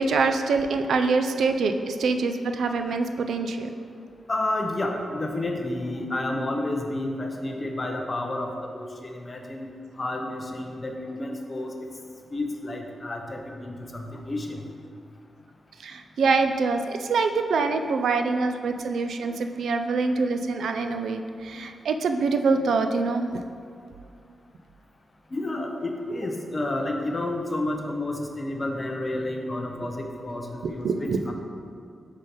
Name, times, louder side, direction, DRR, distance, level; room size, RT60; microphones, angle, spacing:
voice 1, 0.0-3.7 15.8-23.3 30.8-31.3, right 4 dB, 80° right, 6 dB, 0.4 m, -25 dB
voice 2, 4.3-9.7 10.0-11.7 12.3-14.6 17.5-17.6 25.3-31.3, left 1 dB, 25° left, 2 dB, 0.6 m, -30 dB
5.6 x 4.0 x 5.0 m, 2.4 s
wide cardioid pair, 165°, 0 cm